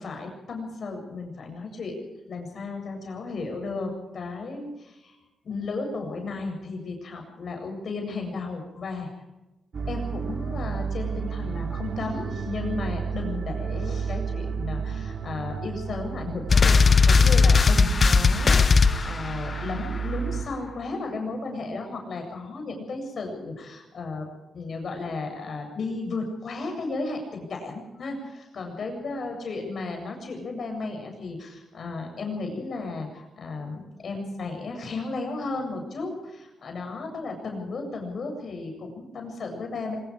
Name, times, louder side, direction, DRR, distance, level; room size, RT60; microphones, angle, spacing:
voice 1, 0.0-2.0 2.3-5.2 5.5-9.1 9.9-40.0, left 3 dB, 60° left, 4 dB, 7.7 m, -34 dB
sound 1, 9.7-20.4, right 6 dB, 60° right, 3.5 m, -32 dB
sound 2, 16.5-19.7, left 5 dB, 45° left, 1.2 m, -18 dB
24.5 x 21.5 x 5.0 m, 0.98 s
cardioid pair, 60°, 0 cm